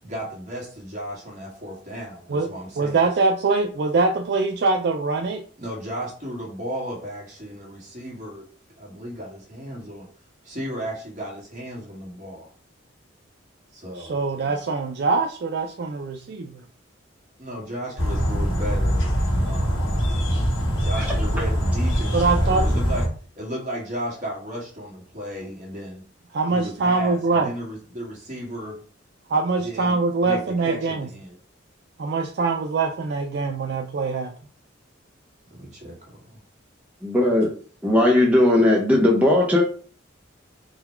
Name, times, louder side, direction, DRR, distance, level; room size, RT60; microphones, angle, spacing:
voice 1, 0.0-3.1 5.6-8.4 8.8-10.1 10.4-12.5 13.7-14.2 17.4-20.0 20.8-23.0 23.3-26.0 26.5-28.8 29.6-31.4 35.5-36.4, equal, 40° right, -3 dB, 1.5 m, -35 dB
voice 2, 2.8-5.4 14.0-16.6 22.1-22.7 26.3-27.5 29.3-31.1 32.0-34.3, right 3 dB, 55° right, 3 dB, 0.4 m, -23 dB
sound 1, 18.0-23.1, equal, 90° left, 1.4 m, -23 dB
voice 3, 37.0-37.5 37.8-39.6, left 1 dB, 5° right, -2 dB, 0.6 m, -17 dB
3.9 x 2.2 x 4.3 m, 0.42 s
head